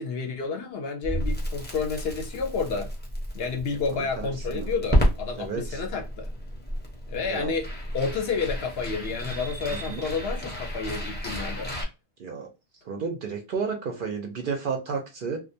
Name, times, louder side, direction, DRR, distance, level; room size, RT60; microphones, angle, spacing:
voice 1, 0.0-2.9 3.3-6.3 7.1-7.7 7.9-11.7, left 5 dB, 65° left, 0.8 m, -30 dB
Crackle, 1.0-11.8, equal, 10° left, 0.6 m, -31 dB
voice 2, 3.9-4.7 5.4-5.8 7.3-7.5 9.7-10.1 12.2-12.5 12.9-15.4, right 5 dB, 60° right, 0.6 m, -32 dB
2.4 x 2.2 x 2.6 m
omnidirectional pair, 1.2 m